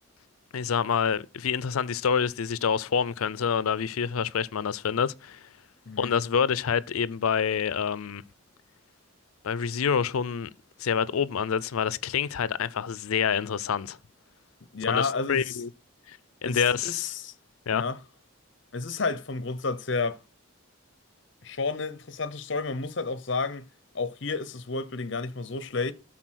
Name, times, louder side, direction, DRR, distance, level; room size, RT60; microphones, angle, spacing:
voice 1, 0.5-5.4 6.0-8.2 9.4-10.5 10.8-14.0 14.9-15.7 16.1-17.1 17.7-17.8, left 7 dB, 90° left, 0.5 m, -27 dB
voice 2, 14.7-15.6 16.4-17.3 17.7-18.0 18.7-20.2 21.4-23.7 23.9-25.9, left 4 dB, 60° left, 0.8 m, -31 dB
12.0 x 4.1 x 6.2 m
head